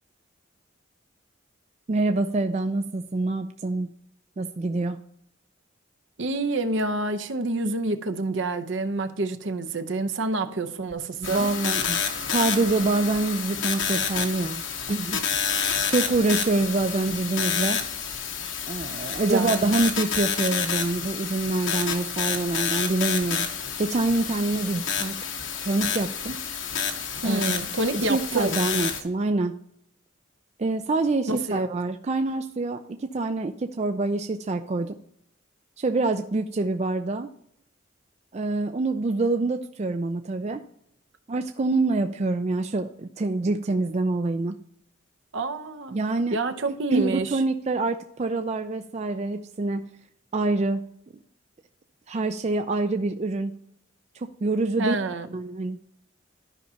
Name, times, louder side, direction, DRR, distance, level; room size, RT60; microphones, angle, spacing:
voice 1, 1.9-3.9 4.4-5.0 11.3-12.0 12.3-14.6 14.9-15.5 15.9-17.8 18.7-23.5 23.8-25.2 25.6-26.4 27.2-27.6 27.9-29.6 30.6-35.0 35.8-37.3 38.3-40.6 41.3-44.6 45.9-46.4 46.9-49.8 50.3-50.8 52.1-53.5 54.1-55.0 55.3-55.8, right 2 dB, 35° right, 0.4 m, -26 dB
voice 2, 6.2-11.5 19.3-19.8 27.2-28.6 31.3-31.6 45.3-46.0 46.3-47.3 54.8-55.3, right 2 dB, 65° right, 0.8 m, -28 dB
sound 1, 10.9-11.3 11.8-12.2 12.8-12.9 13.1-13.2 13.8-13.9 14.1-14.2 14.8-15.2 15.8-16.2 16.8-17.3 17.8-18.2 18.8-18.9 19.1-19.3 19.8-20.2, equal, 90° right, 2.0 m, -48 dB
sound 2, 11.2-29.0, left 7 dB, 70° left, 1.1 m, -29 dB
13.0 x 5.6 x 2.8 m
head